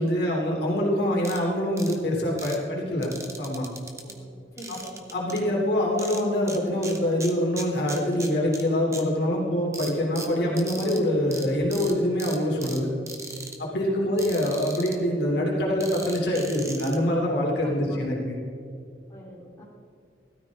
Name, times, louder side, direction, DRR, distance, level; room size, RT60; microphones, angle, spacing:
voice 1, 0.0-3.1 3.4-3.7 4.7-4.8 5.1-12.9 13.6-18.4, left 1 dB, 65° left, -3 dB, 3.2 m, -25 dB
sound 1, 1.2-1.4 1.8-2.0 2.4-2.6 3.0-4.1 4.6-5.4 6.0-6.6 6.8-8.6 8.9-9.0 9.7-11.0 11.3-11.4 11.7-11.9 12.2-12.8 13.1-13.6 14.2-14.9 15.8-17.0, right 3 dB, 15° right, 1.2 m, -38 dB
voice 2, 4.0-5.2 14.0-14.1 17.6-18.0 19.1-19.6, equal, 20° left, -6 dB, 3.4 m, -46 dB
16.0 x 13.5 x 3.7 m, 2.4 s
head